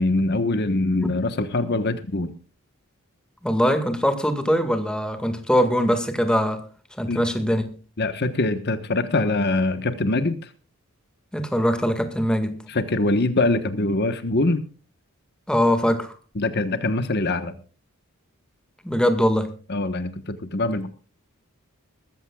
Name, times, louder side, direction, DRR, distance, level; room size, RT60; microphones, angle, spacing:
voice 1, 0.0-2.3 7.1-7.2 8.0-10.5 12.7-14.6 16.3-17.5 19.7-20.9, left 2 dB, 50° left, 1.2 m, -23 dB
voice 2, 3.4-6.7 7.0-7.8 11.3-12.6 15.5-16.1 18.8-19.5, equal, 5° left, 1.9 m, -22 dB
21.5 x 14.5 x 2.4 m
head